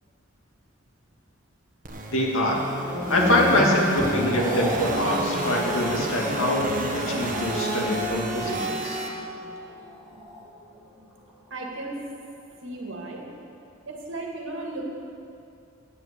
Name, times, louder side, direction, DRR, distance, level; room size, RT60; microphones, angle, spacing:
sound 1, 1.8-9.1, right 1 dB, 40° right, 1.2 m, -30 dB
voice 1, 2.1-2.7 3.1-9.0, left 1 dB, 90° left, -2 dB, 2.1 m, -24 dB
sound 2, 2.6-11.0 11.3-11.7, left 1 dB, 5° right, 2.6 m, -36 dB
voice 2, 11.5-12.0 12.6-13.2 13.9-14.8, right 2 dB, 65° right, -1 dB, 1.9 m, -35 dB
9.1 x 8.1 x 8.1 m, 2.6 s
head